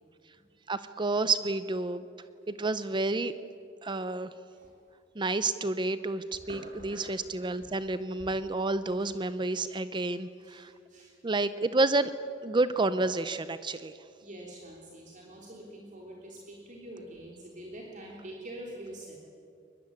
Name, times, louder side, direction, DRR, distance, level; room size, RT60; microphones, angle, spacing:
voice 1, 0.7-2.0 2.5-3.3 3.8-4.3 5.2-10.7 11.2-12.1 12.4-14.0, right 2 dB, 25° right, 13 dB, 0.6 m, -29 dB
voice 2, 6.4-7.0 7.3-7.7 9.0-9.1 9.5-9.6 9.9-10.1 10.4-11.1 14.2-19.2, right 1 dB, 45° right, -2 dB, 3.4 m, -46 dB
22.5 x 21.5 x 9.7 m, 2.4 s
head